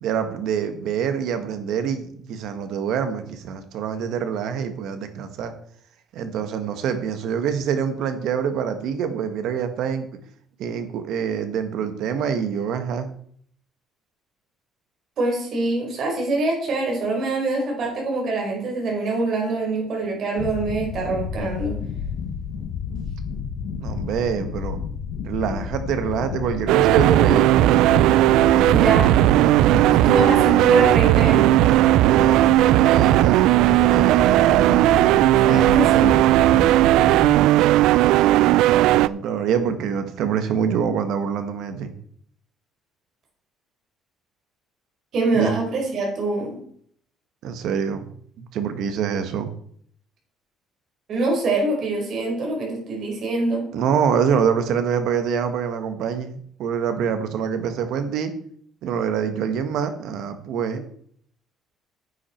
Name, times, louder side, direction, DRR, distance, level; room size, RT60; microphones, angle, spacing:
voice 1, 0.0-5.5 6.1-10.1 10.6-13.1 23.8-24.8 25.2-27.7 32.1-34.5 38.0-41.9 45.3-45.5 47.4-48.1 48.4-49.5 53.7-58.3 58.8-60.9, right 7 dB, 65° right, 9 dB, 1.6 m, -25 dB
voice 2, 15.2-21.8 28.7-29.1 30.0-31.6 35.4-36.2 45.1-46.5 51.1-53.6, right 2 dB, 45° right, -1 dB, 4.9 m, -24 dB
sound 1, 20.4-37.3, left 6 dB, 85° left, 1.3 m, -31 dB
sound 2, 26.7-39.1, right 15 dB, 80° right, 0.3 m, -16 dB
9.8 x 8.4 x 4.5 m, 0.62 s
cardioid pair, 165°, 0 cm